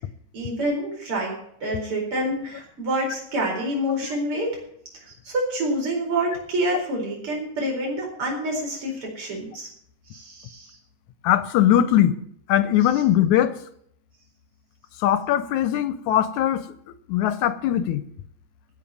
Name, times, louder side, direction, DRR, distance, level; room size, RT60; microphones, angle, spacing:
voice 1, 0.3-1.4 1.6-4.6 5.0-9.7 10.1-10.8, right 1 dB, 40° right, -1 dB, 5.2 m, -27 dB
voice 2, 11.2-12.1 12.5-13.6 15.0-16.7 17.1-18.0, left 11 dB, 75° left, 13 dB, 1.9 m, -20 dB
16.0 x 5.7 x 9.2 m, 0.68 s
omnidirectional pair, 3.7 m